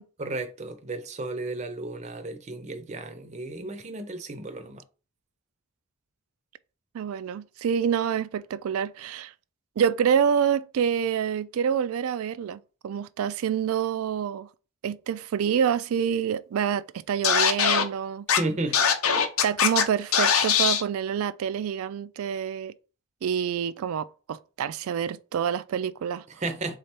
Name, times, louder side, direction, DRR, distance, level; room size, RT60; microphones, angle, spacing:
voice 1, 0.2-4.8 18.4-18.8 26.4-26.8, right 2 dB, 30° right, 0.5 m, -33 dB
voice 2, 6.9-9.3 9.8-14.5 14.8-18.3 19.4-22.7 23.2-26.2, right 8 dB, 85° right, 0.3 m, -27 dB
Scratching (performance technique), 17.2-17.8 18.3-18.4 18.7-19.8 20.1-20.8, left 7 dB, 85° left, 0.7 m, -21 dB
3.7 x 3.3 x 4.3 m
head